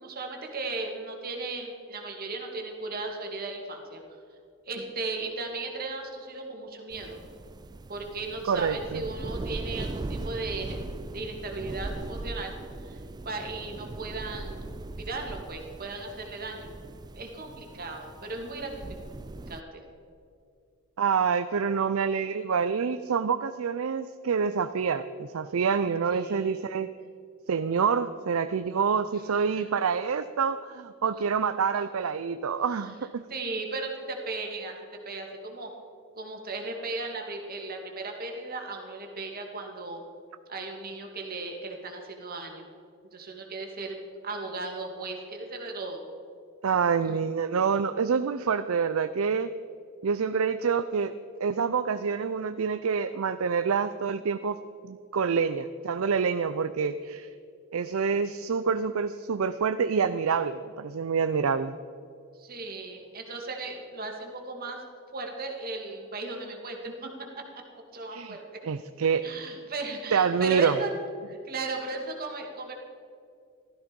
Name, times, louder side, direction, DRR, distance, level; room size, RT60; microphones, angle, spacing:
voice 1, 0.0-4.0 4.7-7.2 7.9-10.8 11.1-12.5 12.8-13.0 13.2-14.7 15.0-16.7 17.1-18.8 19.5-19.8 26.1-26.7 31.7-31.8 32.8-32.9 33.3-34.8 35.1-35.7 36.2-40.0 40.5-42.7 43.1-44.0 44.2-46.0 47.1-47.2 62.3-64.8 65.1-67.1 67.4-67.5 67.9-68.6 69.2-70.9 71.3-72.8, right 3 dB, 45° right, 2 dB, 2.3 m, -36 dB
sound 1, 6.9-19.6, right 2 dB, 20° right, 0.3 m, -39 dB
voice 2, 8.5-9.0 21.0-26.9 27.5-33.2 46.6-49.5 50.0-51.1 51.4-54.6 54.8-57.3 57.7-61.8 68.1-68.4 68.6-69.2 70.1-70.8, right 6 dB, 85° right, 11 dB, 0.5 m, -27 dB
15.5 x 13.5 x 5.2 m, 2.3 s
head